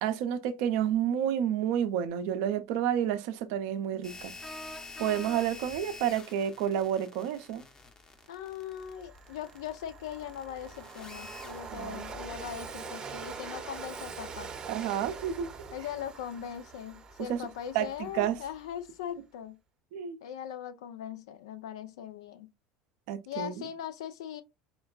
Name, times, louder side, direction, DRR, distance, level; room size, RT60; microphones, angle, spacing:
voice 1, 0.0-4.3 5.0-7.6 11.7-12.1 14.7-15.5 17.3-17.4 17.7-18.3 19.9-20.2 23.1-23.7, right 10 dB, 65° right, 0.5 m, -30 dB
sound 1, 2.1-2.2 4.4-5.8, equal, 10° left, 0.4 m, -44 dB
sound 2, 4.0-15.3, left 3 dB, 25° left, 0.8 m, -48 dB
Train, 7.9-8.0 8.4-18.8, right 5 dB, 30° right, 0.7 m, -44 dB
voice 2, 8.3-14.5 15.7-19.6 20.2-22.5 23.3-24.4, left 9 dB, 75° left, 0.4 m, -40 dB
4.4 x 2.2 x 2.3 m
hypercardioid pair, 80°, 3 cm